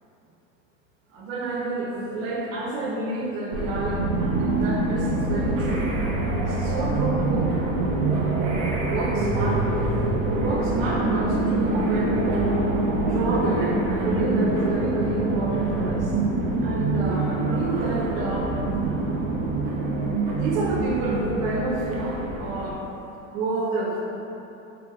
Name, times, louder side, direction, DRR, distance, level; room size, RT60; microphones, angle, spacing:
voice 1, 1.1-4.1 4.3-5.8 6.4-7.5 8.1-8.4 8.9-9.9 10.3-12.4 13.0-16.1 16.6-18.5 20.3-22.8 23.3-24.2, right 2 dB, 80° right, -2 dB, 0.8 m, -29 dB
sound 1, 3.5-22.7, right 2 dB, 40° right, 0.5 m, -25 dB
3.7 x 2.3 x 3.4 m, 3.0 s
supercardioid pair, 155°, 39 cm